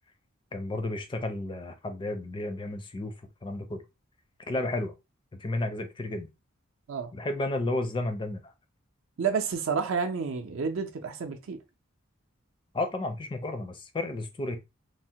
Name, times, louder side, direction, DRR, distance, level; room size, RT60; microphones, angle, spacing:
voice 1, 0.5-3.1 3.4-3.8 4.5-4.9 5.3-6.3 7.1-8.5 12.7-14.6, left 2 dB, 25° left, 0.4 m, -32 dB
voice 2, 9.2-11.6, right 5 dB, 70° right, 0.5 m, -30 dB
3.3 x 2.1 x 2.7 m
head